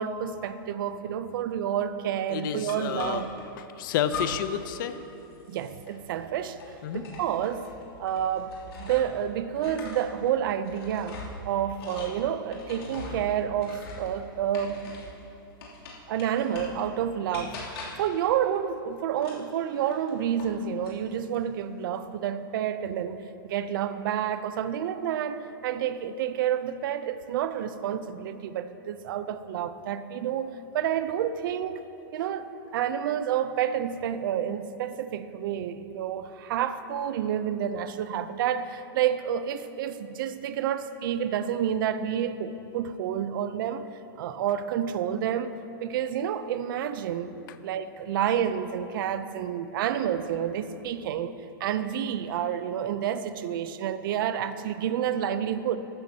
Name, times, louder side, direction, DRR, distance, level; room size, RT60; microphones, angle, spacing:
voice 1, 0.0-3.3 5.5-6.6 6.9-7.7 8.0-14.9 16.1-17.6 18.0-31.8 32.1-43.9 44.2-45.5 45.8-47.4 47.6-51.3 51.6-55.8, right 9 dB, 65° right, 12 dB, 0.6 m, -29 dB
voice 2, 2.3-3.2 3.8-5.0 6.8-7.0, left 9 dB, 60° left, 11 dB, 0.7 m, -30 dB
sound 1, 2.7-3.4 4.1-4.6 4.9-9.2 9.5-15.2 15.6-16.8 17.3-18.1 19.2-20.6 20.8-21.4, left 3 dB, 85° left, 2.9 m, -41 dB
14.5 x 12.0 x 2.8 m, 3.0 s
supercardioid pair, 150°, 12 cm